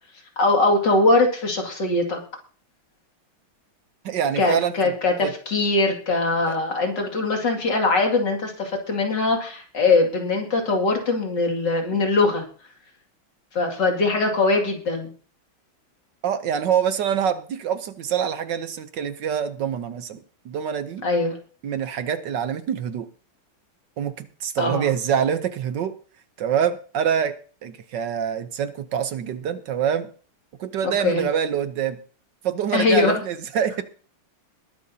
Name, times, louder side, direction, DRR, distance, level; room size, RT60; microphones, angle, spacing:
voice 1, 0.4-2.2 4.4-12.5 13.5-15.1 21.0-21.4 24.6-24.9 30.8-31.2 32.7-33.1, left 3 dB, 50° left, 2 dB, 3.0 m, -21 dB
voice 2, 4.0-4.9 5.2-5.3 6.5-6.6 16.2-21.0 21.6-23.1 24.0-25.9 26.4-27.4 27.6-30.1 30.6-32.0 32.4-33.8, right 8 dB, 65° right, 11 dB, 1.3 m, -25 dB
21.0 x 10.5 x 2.8 m, 0.40 s
omnidirectional pair, 2.4 m